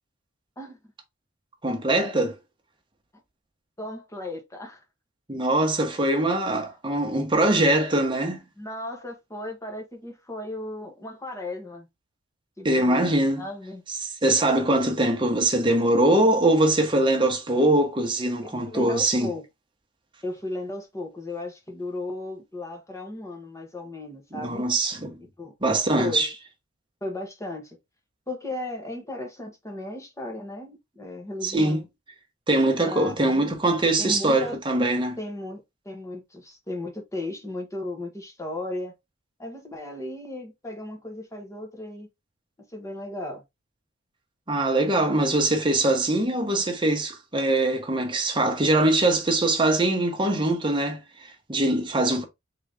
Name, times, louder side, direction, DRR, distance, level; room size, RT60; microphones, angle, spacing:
voice 1, 1.6-2.3 5.3-8.4 12.6-13.4 14.0-19.3 24.3-25.2 25.6-26.3 31.4-31.8 32.5-35.2 44.5-52.2, right 1 dB, 25° right, 1.0 m, -22 dB
voice 2, 3.8-4.8 8.6-11.9 12.6-13.0 13.4-13.8 18.4-19.4 20.2-24.6 25.4-25.5 25.9-26.3 27.0-27.8 28.3-31.9 32.8-33.5 34.0-34.6 35.2-38.9 39.4-42.1 42.7-43.4, left 2 dB, 15° left, 1.2 m, -35 dB
3.9 x 3.1 x 3.5 m
head